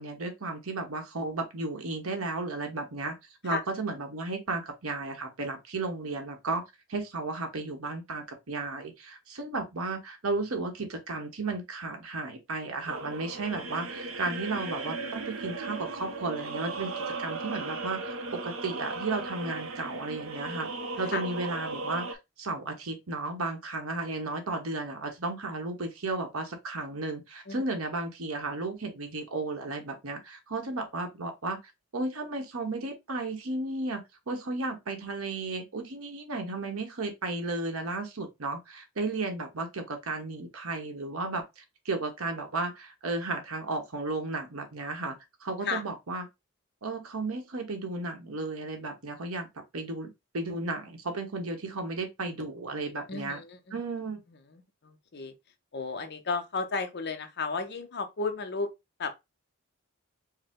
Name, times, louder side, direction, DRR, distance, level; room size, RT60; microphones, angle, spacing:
voice 1, 0.0-3.2 3.4-6.6 6.9-16.9 17.2-18.0 18.3-20.7 21.0-31.6 31.9-45.2 45.4-46.2 46.8-49.5 49.7-53.4 53.7-54.2, right 3 dB, 90° right, 1.1 m, -34 dB
sound 1, 12.9-22.2, right 3 dB, 70° right, 0.7 m, -37 dB
voice 2, 53.1-53.8 54.5-55.3 55.7-58.7 59.0-59.2, left 4 dB, 50° left, 0.7 m, -33 dB
4.8 x 2.1 x 3.6 m
head